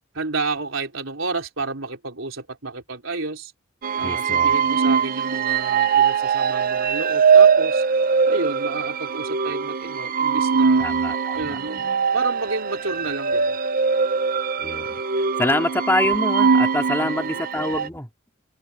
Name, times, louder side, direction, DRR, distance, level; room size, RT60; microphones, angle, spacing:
voice 1, 0.1-3.5 3.9-7.8 8.3-10.9 11.3-13.6 17.0-17.4, right 3 dB, 70° right, 4.1 m, -31 dB
sound 1, 3.8-17.9, right 6 dB, 45° right, 0.8 m, -21 dB
voice 2, 4.0-4.5 10.8-11.6 14.6-14.9 15.2-18.1, left 1 dB, 10° left, 4.0 m, -25 dB
head